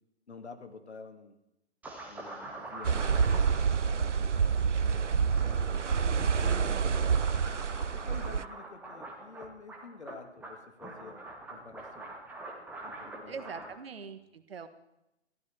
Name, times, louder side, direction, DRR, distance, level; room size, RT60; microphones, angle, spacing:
voice 1, 0.3-1.4 2.1-4.6 5.2-7.3 7.8-12.1 12.8-13.4 14.0-14.3, left 4 dB, 70° left, 5 dB, 2.3 m, -49 dB
sound 1, 1.8-13.7, right 2 dB, 5° right, 1.9 m, -45 dB
sound 2, 2.8-8.4, right 6 dB, 85° right, 0.6 m, -27 dB
voice 2, 6.0-6.3 13.2-14.7, right 5 dB, 55° right, 9 dB, 1.6 m, -43 dB
23.0 x 15.0 x 3.5 m, 0.87 s
figure-of-eight pair, 130°, 35 cm